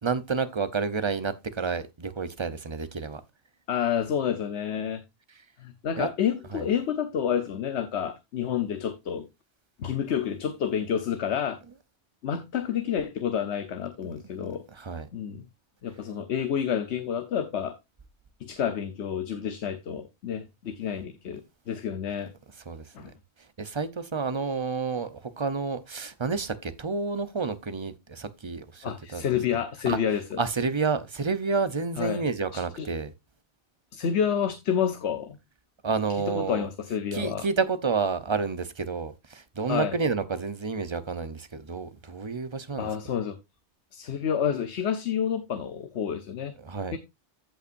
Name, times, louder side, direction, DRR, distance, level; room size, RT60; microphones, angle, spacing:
voice 1, 0.0-3.2 6.0-6.1 6.5-6.7 14.7-15.1 22.7-23.1 23.6-29.2 29.9-30.0 30.4-33.1 35.8-36.7 37.1-42.9 46.6-47.0, right 4 dB, 30° right, 0.8 m, -30 dB
voice 2, 3.7-5.0 5.6-9.3 9.8-11.6 12.2-14.6 15.1-15.4 15.8-17.8 18.4-22.3 22.9-23.1 28.8-30.4 32.0-32.2 32.5-32.9 33.9-35.4 36.3-37.5 39.7-39.9 42.8-43.4 43.9-46.5 46.9-47.0, left 8 dB, 75° left, 1.1 m, -29 dB
15.0 x 5.6 x 2.6 m
omnidirectional pair, 1.1 m